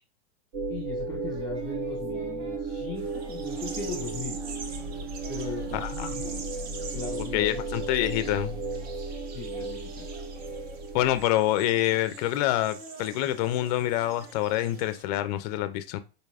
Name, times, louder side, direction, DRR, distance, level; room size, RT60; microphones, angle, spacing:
sound 1, 0.5-11.3, right 3 dB, 50° right, 0.8 m, -34 dB
voice 1, 0.7-4.4 5.3-6.5 6.9-7.6 9.3-10.1, left 5 dB, 10° left, 0 dB, 0.9 m, -38 dB
Singing, 1.3-9.2 9.5-15.3, right 3 dB, 80° right, 1.3 m, -51 dB
sound 2, 3.0-15.1, right 5 dB, 30° right, 0.5 m, -45 dB
voice 2, 5.7-6.2 7.3-8.6 10.9-16.0, left 14 dB, 35° left, 12 dB, 0.4 m, -26 dB
4.1 x 2.2 x 3.3 m, 0.32 s
hypercardioid pair, 130°, 34 cm